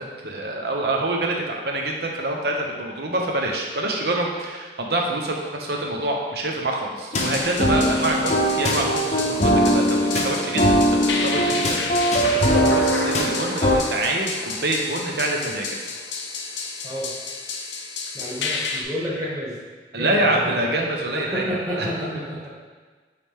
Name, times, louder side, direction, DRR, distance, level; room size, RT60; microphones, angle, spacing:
voice 1, 0.0-15.7 19.9-21.5 21.8-21.9, right 2 dB, 60° right, 0 dB, 0.9 m, -26 dB
sound 1, 7.1-13.8, equal, 40° left, 0.7 m, -21 dB
sound 2, 7.2-18.8, left 4 dB, 90° left, 0.7 m, -31 dB
voice 2, 18.1-19.6 19.9-20.7 21.1-22.5, equal, 20° right, -7 dB, 1.6 m, -30 dB
8.3 x 3.3 x 3.6 m, 1.4 s
head